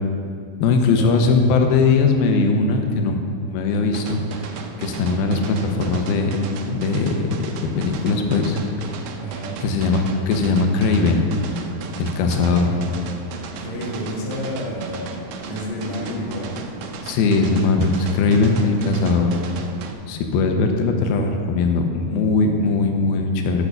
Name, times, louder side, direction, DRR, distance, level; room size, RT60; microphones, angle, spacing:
voice 1, 0.6-3.2 3.5-4.2 4.8-6.4 6.7-8.6 9.6-11.3 12.0-12.8 17.0-19.6 20.1-23.7, left 3 dB, 90° left, 4 dB, 2.6 m, -20 dB
sound 1, 3.9-19.9, right 5 dB, 80° right, 2.2 m, -35 dB
voice 2, 9.2-9.6 13.6-15.2 15.5-16.6, left 1 dB, 50° left, -3 dB, 1.8 m, -30 dB
8.6 x 6.0 x 6.7 m, 2.3 s
omnidirectional pair, 4.2 m